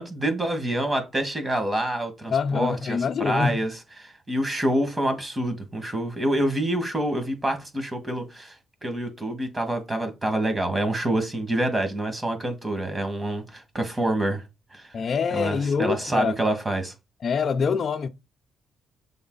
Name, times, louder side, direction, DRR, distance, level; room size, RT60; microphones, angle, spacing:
voice 1, 0.0-3.0 3.2-3.7 4.0-8.6 8.8-14.4 14.7-14.8 15.3-16.9, right 1 dB, 20° right, 1.8 m, -26 dB
voice 2, 2.3-3.6 14.9-16.3 17.2-18.1, left 6 dB, 50° left, 0.5 m, -25 dB
7.0 x 3.9 x 3.9 m
cardioid pair, 90°, 0 cm